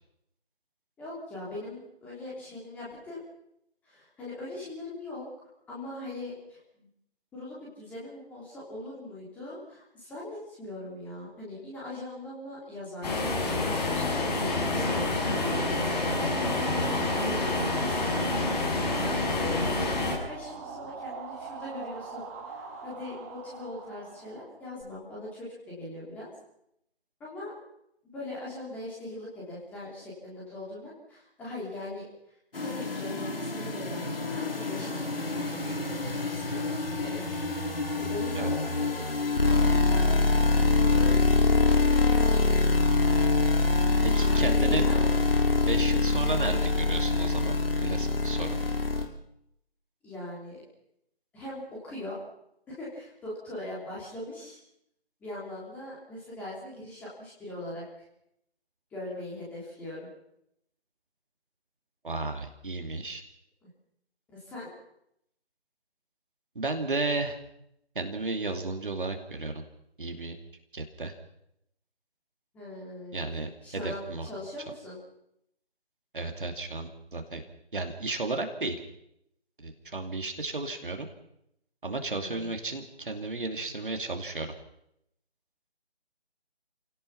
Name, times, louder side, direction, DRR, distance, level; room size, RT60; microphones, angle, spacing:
voice 1, 1.0-3.2 3.8-5.2 5.7-6.9 7.3-19.8 20.3-26.3 27.2-27.5 28.1-32.0 32.6-37.2 37.9-39.0 39.4-41.2 44.2-45.0 50.0-50.6 51.3-52.2 52.7-54.6 55.2-58.0 58.9-60.1 63.6-63.7 64.3-64.7 72.5-73.2 73.6-75.0 82.1-82.5, left 1 dB, 5° left, -6 dB, 3.3 m, -40 dB
sound 1, 13.0-20.1, left 2 dB, 40° left, 7.5 m, -28 dB
sound 2, 13.7-24.8, right 5 dB, 15° right, 1.7 m, -42 dB
sound 3, 32.5-49.1, left 3 dB, 60° left, 3.6 m, -25 dB
voice 2, 44.1-44.9 45.7-48.6 62.0-63.2 66.5-67.4 67.9-69.6 70.0-70.4 70.7-71.1 73.1-74.3 76.1-77.4 77.7-78.8 79.6-81.1 81.8-84.5, right 3 dB, 50° right, 4 dB, 2.8 m, -33 dB
29.0 x 17.5 x 5.9 m, 0.78 s
figure-of-eight pair, 155°, 33 cm